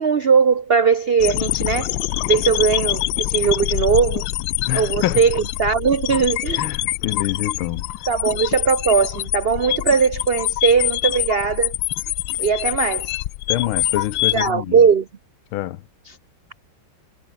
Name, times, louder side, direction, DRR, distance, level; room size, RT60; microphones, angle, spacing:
voice 1, 0.0-1.9 2.3-4.3 4.7-6.7 8.1-11.7 12.4-13.2 14.3-15.1 16.1-16.2, right 6 dB, 80° right, 0.5 m, -19 dB
sound 1, 1.2-14.5, left 15 dB, 75° left, 1.4 m, -25 dB
voice 2, 4.7-5.2 6.6-7.9 13.5-14.8 15.5-15.8, left 14 dB, 90° left, 1.6 m, -26 dB
omnidirectional pair, 2.2 m